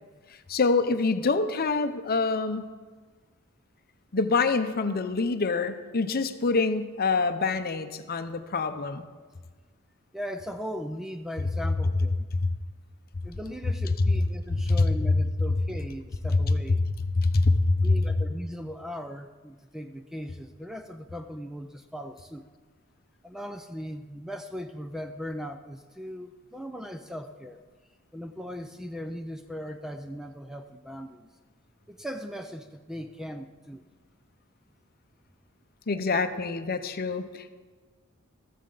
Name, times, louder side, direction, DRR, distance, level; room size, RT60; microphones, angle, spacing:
voice 1, 0.5-2.7 4.1-9.0 17.2-18.0 35.9-37.5, left 3 dB, 45° left, 9 dB, 0.7 m, -26 dB
voice 2, 10.1-12.3 13.2-16.8 17.8-22.4 23.2-27.6 28.1-31.3 31.9-33.8, equal, ahead, 6 dB, 0.5 m, -38 dB
14.0 x 13.5 x 4.0 m, 1.4 s
head